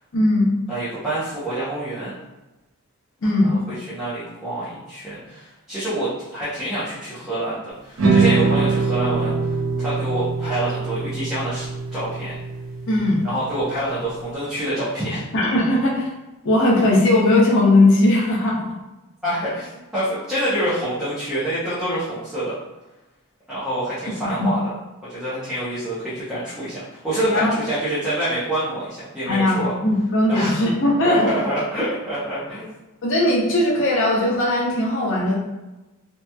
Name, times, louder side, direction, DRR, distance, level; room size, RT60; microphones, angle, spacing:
voice 1, 0.1-0.5 3.2-3.6 12.9-13.2 15.3-16.1 16.4-18.6 24.4-24.5 27.2-27.5 29.3-31.4 33.0-35.3, left 1 dB, 55° left, -2 dB, 0.6 m, -18 dB
voice 2, 0.7-2.1 3.4-12.4 13.2-15.2 19.2-22.6 23.5-24.7 25.1-29.7 30.3-30.6 31.0-32.7, right 1 dB, 5° right, -13 dB, 0.6 m, -27 dB
sound 1, 8.0-14.3, right 4 dB, 60° right, 0.5 m, -23 dB
2.8 x 2.3 x 2.2 m, 1.0 s
head